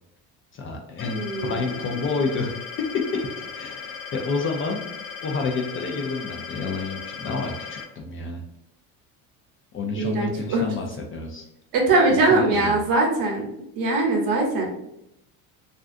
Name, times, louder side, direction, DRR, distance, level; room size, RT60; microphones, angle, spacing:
voice 1, 0.5-2.6 3.3-4.8 5.2-8.4 9.7-11.4 12.3-12.8, left 3 dB, 30° left, 2 dB, 0.4 m, -29 dB
sound 1, 1.0-7.8, left 6 dB, 60° left, 0.7 m, -37 dB
voice 2, 1.1-1.6 9.9-10.6 11.7-14.7, right 2 dB, 55° right, 0 dB, 0.9 m, -21 dB
2.5 x 2.3 x 2.4 m, 0.82 s
supercardioid pair, 100°, 40 cm